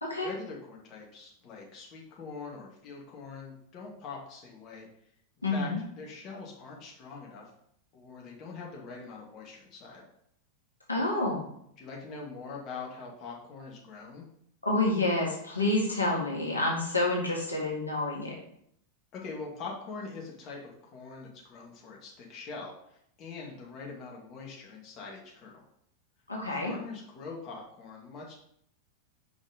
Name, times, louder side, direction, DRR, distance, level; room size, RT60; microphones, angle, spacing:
voice 1, 0.2-4.9 5.4-5.7 6.0-7.5 7.9-10.0 11.8-14.3 19.1-25.6 26.6-28.4, left 4 dB, 35° left, -2 dB, 2.2 m, -43 dB
voice 2, 5.4-5.8 10.9-11.5 14.6-18.3 26.3-26.7, left 2 dB, 80° left, -3 dB, 1.8 m, -28 dB
5.7 x 5.2 x 5.1 m, 0.70 s
figure-of-eight pair, 90°, 0 cm